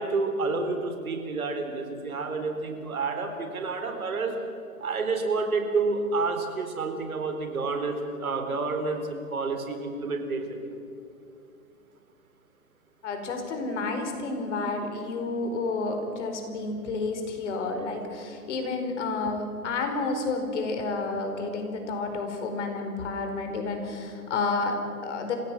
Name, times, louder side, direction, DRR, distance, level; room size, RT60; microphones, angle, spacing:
voice 1, 0.0-4.3 4.8-10.7, right 3 dB, 70° right, 5 dB, 4.2 m, -29 dB
voice 2, 13.0-25.4, left 3 dB, 50° left, 5 dB, 4.7 m, -30 dB
29.0 x 16.5 x 7.5 m, 2.5 s
figure-of-eight pair, 130°, 45 cm